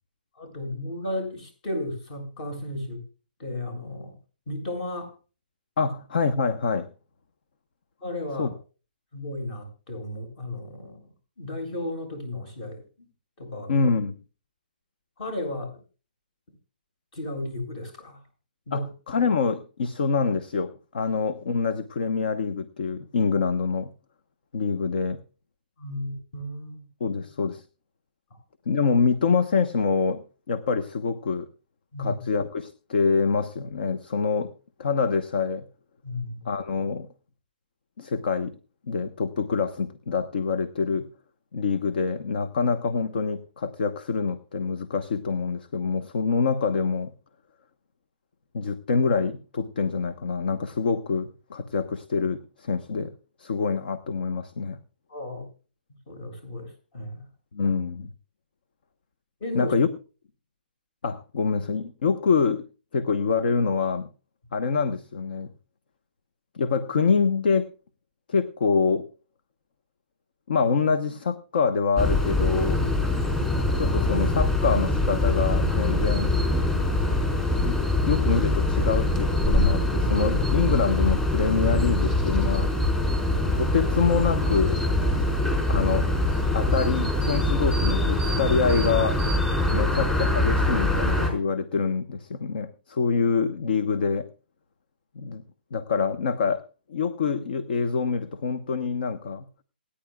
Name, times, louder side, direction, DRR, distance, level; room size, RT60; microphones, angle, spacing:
voice 1, 0.3-3.0 3.4-4.1 4.5-5.1 8.0-8.5 9.1-11.1 11.4-13.1 13.4-13.9 15.2-15.8 17.1-18.2 18.7-18.9 25.8-26.9 31.9-32.2 36.0-36.4 55.1-55.4 56.1-57.3 59.4-59.7 89.8-89.9, left 1 dB, 45° left, 5 dB, 7.4 m, -34 dB
voice 2, 5.8-6.9 8.4-8.5 13.7-14.2 18.7-23.9 24.5-25.2 27.0-27.6 28.7-31.5 32.0-34.5 34.8-35.6 36.4-37.1 38.0-38.6 38.9-41.1 41.5-47.1 48.5-53.1 53.4-54.8 57.5-58.1 59.5-59.9 61.0-62.6 62.9-64.1 64.5-65.5 66.5-67.7 68.3-69.0 70.5-72.8 73.8-76.3 77.6-82.7 83.5-84.8 85.7-86.1 86.5-89.2 89.7-94.3 95.1-95.4 95.7-96.6 96.9-99.5, left 5 dB, 65° left, 10 dB, 1.1 m, -25 dB
sound 1, 72.0-91.3, left 2 dB, 10° left, 4.8 m, -23 dB
27.5 x 10.0 x 2.4 m, 0.35 s
hypercardioid pair, 145°, 6 cm